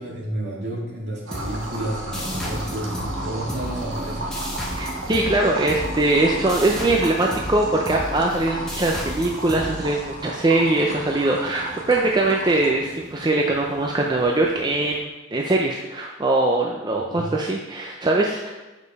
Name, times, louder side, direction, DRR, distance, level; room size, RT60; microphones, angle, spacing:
voice 1, 0.0-4.3 17.0-17.3, right 1 dB, 60° right, -4 dB, 2.2 m, -31 dB
sound 1, 1.3-10.5, equal, 5° left, 1.3 m, -34 dB
sound 2, 1.3-12.7, right 1 dB, 80° right, 1.3 m, -35 dB
sound 3, 2.1-15.0, right 1 dB, 40° right, 1.7 m, -39 dB
voice 2, 4.7-18.5, right 2 dB, 20° right, -1 dB, 0.5 m, -22 dB
6.7 x 5.1 x 5.3 m, 1.1 s
head